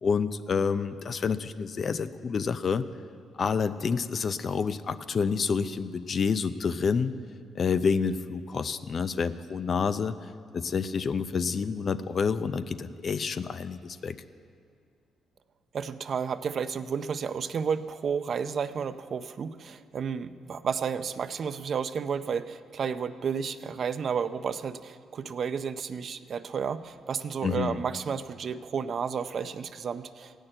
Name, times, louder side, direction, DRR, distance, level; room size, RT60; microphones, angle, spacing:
voice 1, 0.0-2.8 3.4-7.1 7.5-10.1 10.5-14.2 27.4-27.8, left 5 dB, 45° left, 12 dB, 0.5 m, -28 dB
voice 2, 15.7-30.3, right 6 dB, 50° right, 12 dB, 0.5 m, -32 dB
15.5 x 6.5 x 8.9 m, 2.3 s
cardioid pair, 90°, 0 cm